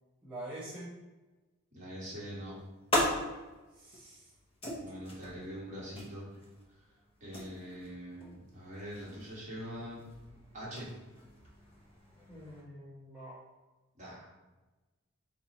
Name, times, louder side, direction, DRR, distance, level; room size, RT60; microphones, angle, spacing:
voice 1, 0.2-0.9 3.7-4.3 12.3-13.4, right 1 dB, 10° right, -10 dB, 0.9 m, -45 dB
voice 2, 1.7-2.6 4.8-6.3 7.2-10.1 10.5-10.9 13.9-14.3, equal, 35° right, -6 dB, 1.4 m, -43 dB
sound 1, 2.2-12.6, left 1 dB, 25° left, 0.9 m, -40 dB
4.4 x 2.6 x 4.0 m, 1.2 s
head